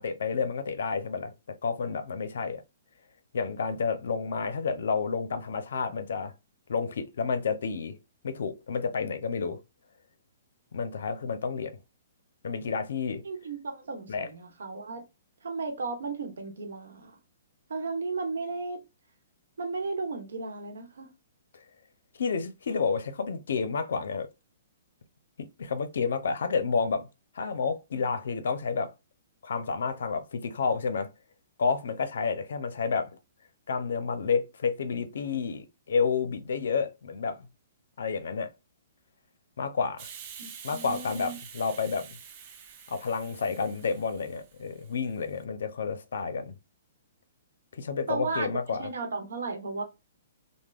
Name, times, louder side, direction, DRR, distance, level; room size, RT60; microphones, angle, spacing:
voice 1, 0.0-1.3 1.6-2.6 3.3-6.3 6.7-8.0 8.2-9.6 10.7-11.7 12.4-13.2 14.1-14.3 21.5-21.6 22.2-24.3 25.4-27.1 27.3-28.9 29.4-31.1 31.6-33.1 33.7-37.5 38.0-38.5 39.6-40.1 40.6-42.2 42.9-46.6 47.7-48.9, left 5 dB, 75° left, 0.5 m, -30 dB
voice 2, 13.2-15.0 15.4-17.1 17.7-18.8 19.6-21.1 40.4-41.4 48.1-49.8, right 4 dB, 85° right, 1.0 m, -35 dB
Hiss, 40.0-45.3, right 7 dB, 35° right, 0.5 m, -47 dB
3.3 x 2.1 x 2.3 m
hypercardioid pair, 155°, 0 cm